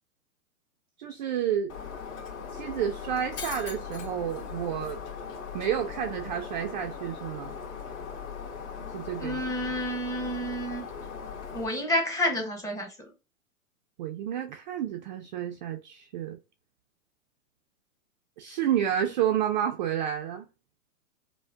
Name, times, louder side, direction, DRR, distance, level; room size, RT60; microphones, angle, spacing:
voice 1, 1.0-1.7 2.5-5.0 5.5-7.5 8.9-9.4 14.0-16.4 18.4-20.5, right 9 dB, 35° right, 0.4 m, -30 dB
Shatter, 1.7-11.7, left 6 dB, 55° left, 1.8 m, -39 dB
voice 2, 9.2-10.8 11.5-12.9, equal, 10° left, 0.9 m, -29 dB
5.0 x 2.1 x 2.4 m
hypercardioid pair, 125°, 41 cm